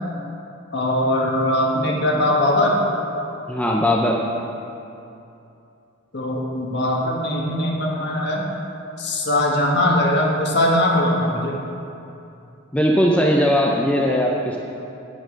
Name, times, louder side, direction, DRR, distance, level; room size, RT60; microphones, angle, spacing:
voice 1, 0.7-2.7 6.1-8.4 9.0-11.6, left 1 dB, 55° left, -2 dB, 1.5 m, -20 dB
voice 2, 3.5-4.2 12.7-14.6, equal, 5° left, -2 dB, 0.6 m, -19 dB
8.9 x 8.8 x 5.2 m, 2.7 s
head